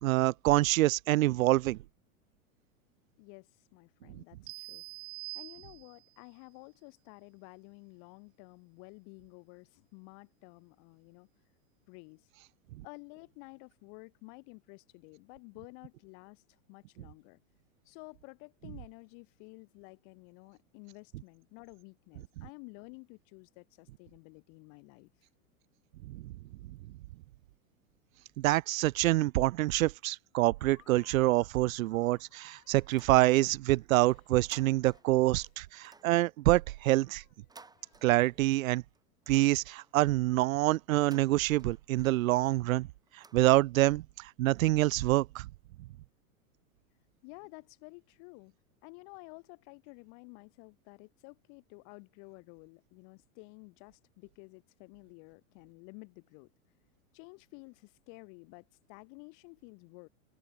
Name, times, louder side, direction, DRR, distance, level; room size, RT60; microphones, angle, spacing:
voice 1, 0.0-1.8 26.1-26.3 28.4-37.2 38.0-38.8 39.3-42.9 43.3-45.5, right 17 dB, 75° right, 0.7 m, -26 dB
voice 2, 3.2-4.8 5.3-11.3 11.9-12.3 12.8-17.4 17.9-25.1 47.2-48.5 48.8-56.5 57.1-60.1, left 40 dB or more, 50° left, 5.5 m, -52 dB
sound 1, 4.5-6.2, right 23 dB, 35° right, 1.1 m, -45 dB
Laughter, 30.5-38.8, left 11 dB, 90° left, 7.5 m, -67 dB
sound 2, 32.8-33.8 34.1-35.2 35.7-38.6 38.9-40.1 40.9-44.0, right 4 dB, 10° right, 3.7 m, -59 dB
open air
supercardioid pair, 140°, 41 cm